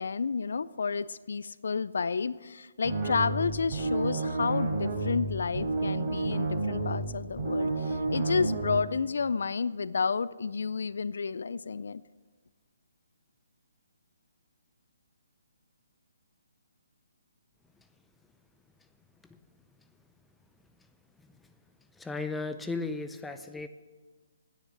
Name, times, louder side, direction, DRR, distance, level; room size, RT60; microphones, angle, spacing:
voice 1, 0.0-12.0, left 5 dB, 70° left, 18 dB, 0.4 m, -31 dB
sound 1, 2.8-8.8, right 3 dB, 25° right, 4.4 m, -31 dB
voice 2, 21.9-23.7, left 3 dB, 5° left, 8 dB, 0.6 m, -35 dB
9.7 x 9.4 x 7.5 m, 1.4 s
hypercardioid pair, 145°, 0 cm